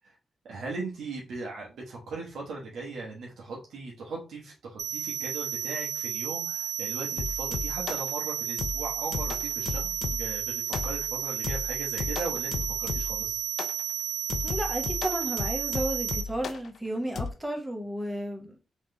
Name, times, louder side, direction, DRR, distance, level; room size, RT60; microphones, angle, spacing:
voice 1, 0.4-13.4, right 3 dB, 80° right, 1.1 m, -38 dB
sound 1, 4.8-16.2, right 9 dB, 50° right, 0.7 m, -32 dB
sound 2, 7.2-8.1 8.6-10.4 10.7-11.1 11.4-13.3 13.6-13.8 14.3-16.7 17.2-17.3, left 5 dB, 65° left, 0.4 m, -34 dB
voice 2, 14.4-18.6, right 1 dB, 10° right, 1.0 m, -33 dB
3.6 x 3.1 x 3.2 m
cardioid pair, 85°, 0 cm